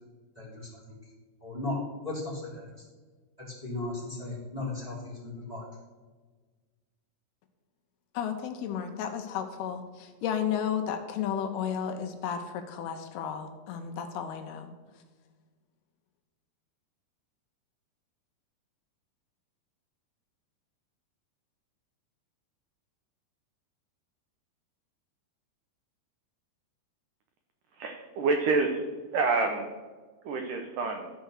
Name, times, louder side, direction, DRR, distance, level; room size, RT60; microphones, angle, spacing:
voice 1, 0.3-1.0 1.4-1.8 2.0-2.7 3.6-5.6, left 2 dB, 10° right, -4 dB, 2.5 m, -36 dB
voice 2, 8.1-14.7, left 8 dB, 80° left, 6 dB, 2.6 m, -33 dB
voice 3, 27.8-28.8 29.1-29.7 30.2-31.1, right 4 dB, 80° right, 4 dB, 1.9 m, -27 dB
13.5 x 4.6 x 6.4 m, 1.4 s
omnidirectional pair, 4.8 m